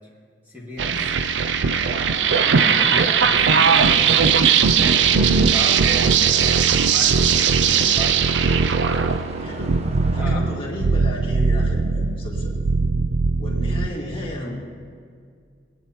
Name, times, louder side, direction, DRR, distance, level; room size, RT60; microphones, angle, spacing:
voice 1, 0.5-1.1 1.8-4.4 4.9-8.3 10.1-10.5, equal, 10° right, -5 dB, 2.0 m, -36 dB
sound 1, 0.8-13.9, right 6 dB, 80° right, 0.5 m, -19 dB
sound 2, 2.1-10.3, right 2 dB, 40° right, 0.8 m, -40 dB
voice 2, 9.4-9.8 10.1-12.6 13.4-14.5, left 1 dB, 30° left, -4 dB, 2.0 m, -33 dB
22.0 x 9.0 x 2.9 m, 2.1 s
head